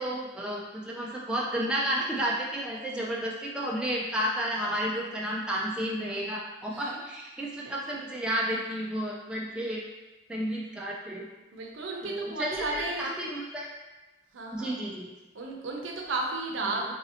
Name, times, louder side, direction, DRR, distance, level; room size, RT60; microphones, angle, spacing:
voice 1, 0.0-9.8 10.3-11.3 12.0-13.7 14.5-15.1, equal, 5° right, -4 dB, 0.3 m, -31 dB
voice 2, 11.5-13.1 14.3-14.8 15.3-16.9, right 3 dB, 85° right, 0 dB, 0.6 m, -34 dB
4.0 x 2.6 x 2.7 m, 1.1 s
head